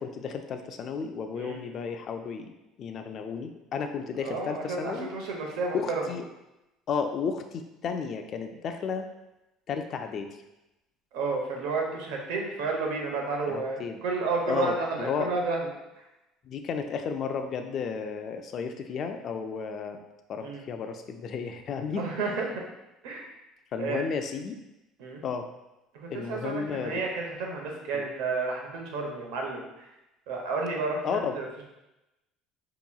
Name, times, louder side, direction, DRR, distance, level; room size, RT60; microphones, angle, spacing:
voice 1, 0.0-2.5 2.8-5.1 5.7-6.2 6.9-9.1 9.7-10.3 13.5-14.0 14.5-15.3 16.4-20.0 20.3-22.1 23.7-24.6 25.2-25.5 26.1-27.0 27.9-28.1 31.0-31.3, left 6 dB, 45° left, 6 dB, 0.4 m, -33 dB
voice 2, 4.2-6.1 11.1-15.7 20.4-20.6 21.9-22.6 23.0-23.2 23.8-24.0 25.0-25.2 25.9-29.9 30.3-31.6, right 3 dB, 85° right, 0 dB, 0.8 m, -31 dB
5.4 x 2.9 x 2.3 m, 0.95 s
cardioid pair, 135°, 0 cm